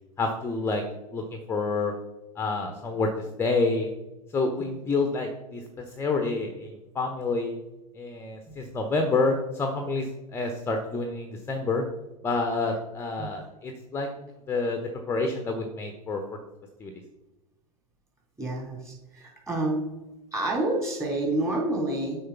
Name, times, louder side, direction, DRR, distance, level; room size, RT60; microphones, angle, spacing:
voice 1, 0.2-0.8 1.1-1.2 1.5-1.9 2.4-3.1 3.4-3.9 4.3-5.6 6.0-7.5 7.9-11.8 12.2-14.1 14.5-14.8 15.1-16.2 16.8-16.9, left 3 dB, 15° left, 4 dB, 0.8 m, -28 dB
voice 2, 18.4-19.9 20.3-22.2, right 2 dB, 15° right, -2 dB, 3.1 m, -28 dB
6.7 x 4.4 x 6.7 m, 1.0 s
figure-of-eight pair, 90°, 19 cm